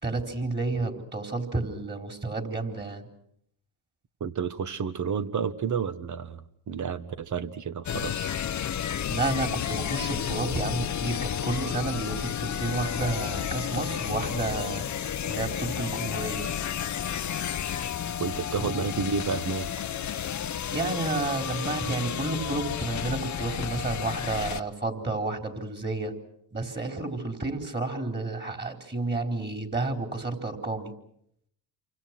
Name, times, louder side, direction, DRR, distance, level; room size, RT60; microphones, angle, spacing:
voice 1, 0.0-3.1 9.1-14.8 15.2-16.5 18.6-18.9 20.7-26.1 26.5-30.9, right 3 dB, 20° right, 5 dB, 4.4 m, -31 dB
voice 2, 4.2-8.4 18.2-19.7, right 6 dB, 35° right, 12 dB, 1.6 m, -31 dB
sound 1, 7.9-24.6, left 9 dB, 35° left, 1.0 m, -32 dB
29.0 x 25.0 x 6.2 m, 0.72 s
supercardioid pair, 85°, 48 cm